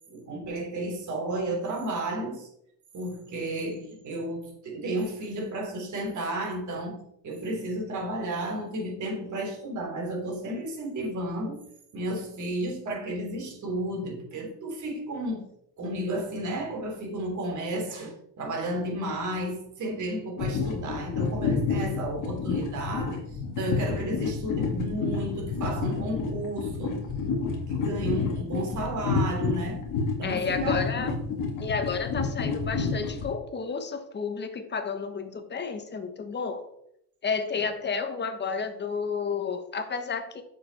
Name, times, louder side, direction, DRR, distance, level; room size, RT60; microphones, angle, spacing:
voice 1, 0.1-2.5 2.9-11.6 11.9-15.5 15.8-23.2 23.6-27.0 27.7-29.9 30.2-31.0 37.6-37.7, right 1 dB, 35° right, 1 dB, 3.5 m, -32 dB
sound 1, 20.4-33.3, left 4 dB, 40° left, 2.2 m, -29 dB
voice 2, 30.2-31.2 31.6-36.7 37.2-40.4, left 5 dB, 20° left, 7 dB, 1.3 m, -31 dB
7.7 x 7.2 x 4.3 m, 0.74 s
supercardioid pair, 105°, 50 cm